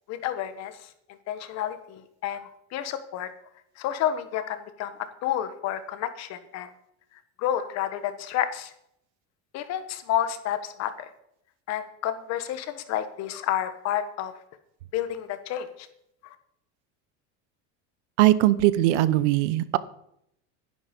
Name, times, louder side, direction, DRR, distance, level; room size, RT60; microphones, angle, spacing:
voice 1, 0.1-0.7 1.3-3.3 3.8-4.9 5.2-6.7 7.4-8.7 9.5-11.1 11.7-14.3 14.9-15.7, left 11 dB, 50° left, 10 dB, 1.4 m, -30 dB
voice 2, 18.2-19.8, right 15 dB, 90° right, 17 dB, 0.9 m, -20 dB
11.5 x 10.5 x 5.3 m, 0.74 s
cardioid pair, 145°, 35 cm